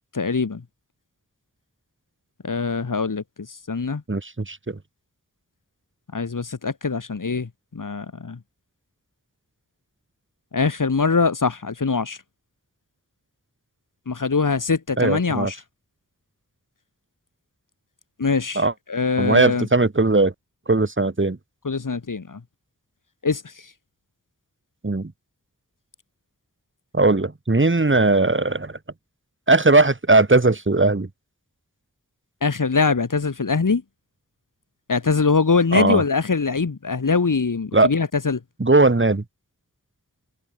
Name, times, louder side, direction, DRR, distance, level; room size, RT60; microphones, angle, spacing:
voice 1, 0.1-0.6 2.4-3.2 3.7-4.0 6.1-8.4 10.5-12.2 14.1-15.6 18.2-18.6 18.9-19.7 21.6-22.4 23.2-23.4 32.4-33.8 34.9-38.4, left 4 dB, 80° left, 4.9 m, -22 dB
voice 2, 4.1-4.8 15.0-15.5 18.5-18.7 19.2-20.3 20.7-21.4 24.8-25.1 26.9-28.7 29.5-31.1 35.7-36.0 37.7-37.9 38.6-39.2, right 2 dB, 40° right, 4.7 m, -18 dB
wide cardioid pair, 70°, 31 cm